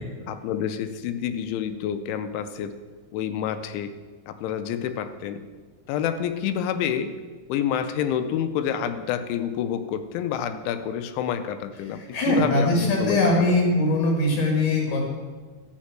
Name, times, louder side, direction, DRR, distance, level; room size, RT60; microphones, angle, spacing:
voice 1, 0.0-2.8 3.1-4.0 4.3-5.4 5.9-7.1 7.5-12.0 12.3-13.3 13.7-13.8, left 9 dB, 85° left, 10 dB, 3.0 m, -28 dB
voice 2, 11.8-15.0, left 1 dB, 55° left, 0 dB, 2.6 m, -22 dB
12.0 x 5.7 x 7.4 m, 1.4 s
omnidirectional pair, 5.4 m